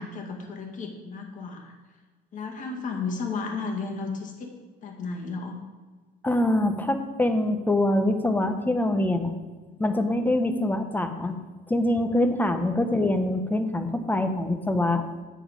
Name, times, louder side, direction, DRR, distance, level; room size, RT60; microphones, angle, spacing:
voice 1, 0.0-1.7 2.3-4.5 4.8-5.6 12.8-12.9, left 4 dB, 45° left, 2 dB, 1.9 m, -33 dB
voice 2, 6.2-9.3 9.8-11.3 11.7-15.0, left 1 dB, 10° left, 8 dB, 0.8 m, -24 dB
8.8 x 6.9 x 5.0 m, 1.3 s
cardioid pair, 135°, 19 cm